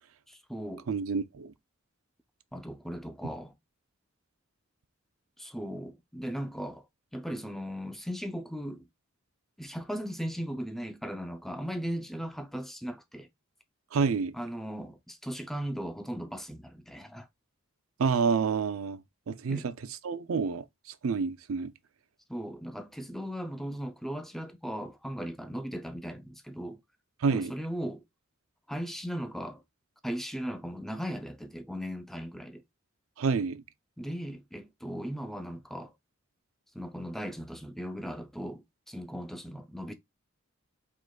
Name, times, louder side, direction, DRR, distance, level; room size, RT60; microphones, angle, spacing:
voice 1, 0.3-0.9 2.5-3.5 5.4-6.9 7.1-8.9 9.6-13.3 14.3-17.3 19.5-19.7 22.3-26.8 27.3-28.0 28.7-29.6 30.0-32.6 34.0-35.9 36.7-39.9, equal, ahead, 0.4 m, -37 dB
voice 2, 0.9-1.5 13.9-14.3 18.0-19.0 19.3-19.7 20.0-20.6 21.0-21.7 27.2-27.5 33.2-33.6, right 5 dB, 75° right, 0.5 m, -28 dB
4.9 x 3.8 x 2.3 m
head